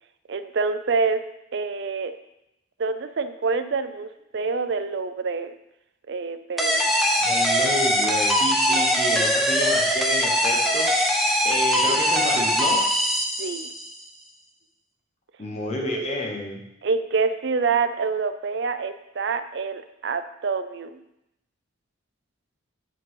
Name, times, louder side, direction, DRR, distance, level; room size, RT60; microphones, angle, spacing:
voice 1, 0.3-1.2 1.5-2.1 2.8-5.6 6.1-6.9 8.7-8.9 13.4-13.7 15.7-16.2 16.8-21.0, right 4 dB, 55° right, 11 dB, 0.5 m, -27 dB
sound 1, 6.6-13.9, equal, ahead, 0.7 m, -22 dB
voice 2, 7.2-10.9 11.3-12.8 15.4-16.6, left 1 dB, 35° left, -1 dB, 1.1 m, -30 dB
9.6 x 4.1 x 5.5 m, 0.86 s
head